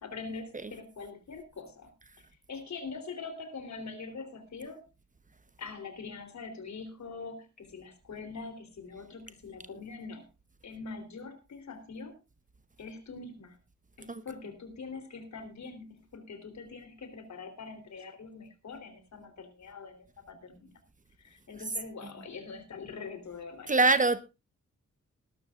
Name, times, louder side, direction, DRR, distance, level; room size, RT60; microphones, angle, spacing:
voice 1, 0.0-1.9 2.2-4.8 5.6-10.3 10.6-12.2 12.8-13.6 14.0-20.7 21.2-23.9, left 4 dB, 70° left, 3.6 m, -43 dB
voice 2, 23.7-24.2, right 3 dB, 25° right, 0.9 m, -23 dB
19.5 x 12.0 x 2.4 m
wide cardioid pair, 150°, 29 cm